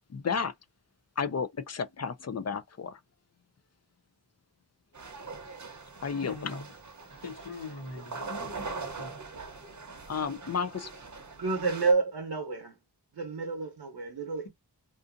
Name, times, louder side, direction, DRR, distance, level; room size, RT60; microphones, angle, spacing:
voice 1, 0.1-0.5 1.2-3.0 6.0-6.5 10.1-10.9, left 6 dB, 40° left, 0.4 m, -32 dB
sound 1, 4.9-11.9, right 4 dB, 45° right, 0.8 m, -42 dB
voice 2, 6.1-6.7 7.1-9.2, left 3 dB, 85° left, 1.3 m, -42 dB
voice 3, 11.4-12.8 13.1-14.5, right 4 dB, 70° right, 0.8 m, -29 dB
2.5 x 2.5 x 2.5 m
wide cardioid pair, 45°, 41 cm